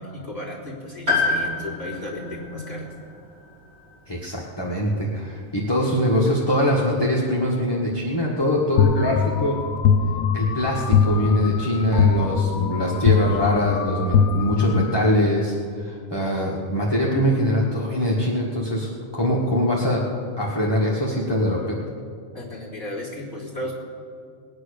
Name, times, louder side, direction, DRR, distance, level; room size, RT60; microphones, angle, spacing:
voice 1, 0.0-2.9 22.3-23.7, left 1 dB, 15° right, -7 dB, 3.5 m, -34 dB
Piano, 1.1-5.2 6.5-6.6, left 3 dB, 85° right, 4.3 m, -28 dB
voice 2, 4.1-9.6 10.3-20.0 20.4-21.8, equal, 20° left, -5 dB, 1.6 m, -23 dB
sound 1, 8.8-15.1, left 6 dB, 80° left, 1.1 m, -21 dB
20.0 x 9.5 x 6.6 m, 2.3 s
omnidirectional pair, 1.5 m